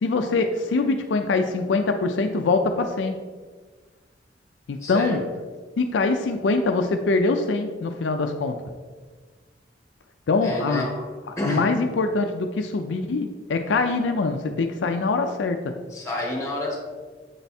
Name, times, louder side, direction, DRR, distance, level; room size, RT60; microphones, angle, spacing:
voice 1, 0.0-3.2 4.7-5.3 5.8-8.6 10.3-10.9 11.3-15.8, left 3 dB, 75° left, 6 dB, 0.4 m, -23 dB
voice 2, 4.8-5.2 10.4-11.1 11.4-11.6 15.9-16.8, left 1 dB, 15° left, -2 dB, 1.5 m, -29 dB
7.2 x 3.4 x 4.1 m, 1.4 s
head